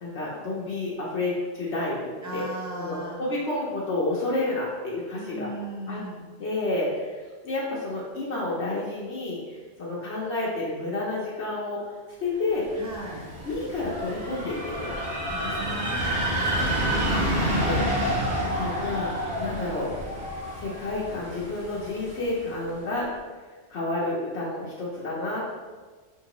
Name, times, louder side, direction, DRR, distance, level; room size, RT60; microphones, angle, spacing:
voice 1, 0.0-2.4 2.8-5.5 5.9-6.0 6.4-11.9 12.2-12.7 13.4-15.0 16.9-19.1 19.4-19.9 20.5-23.1 23.7-25.5, left 2 dB, 70° left, -6 dB, 1.1 m, -30 dB
voice 2, 2.2-3.2 5.1-6.3 12.8-13.2 15.3-16.8, right 1 dB, 20° right, -2 dB, 0.6 m, -37 dB
sound 1, 12.6-22.4, equal, 55° right, 1.3 m, -29 dB
4.8 x 3.7 x 3.0 m, 1.4 s
omnidirectional pair, 1.2 m